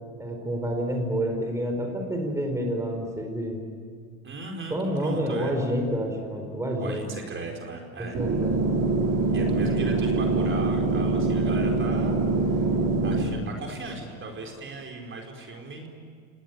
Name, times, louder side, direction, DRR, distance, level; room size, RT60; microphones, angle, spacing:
voice 1, 0.2-3.6 4.7-7.0 8.0-8.6, equal, 5° right, 2 dB, 4.6 m, -28 dB
voice 2, 4.2-5.5 6.8-8.2 9.3-12.2 12.5-12.6 13.0-15.9, right 3 dB, 25° right, 1 dB, 4.5 m, -37 dB
sound 1, 8.1-13.2, right 3 dB, 45° right, 4.6 m, -24 dB
28.5 x 19.0 x 9.3 m, 2.2 s
hypercardioid pair, 100°, 43 cm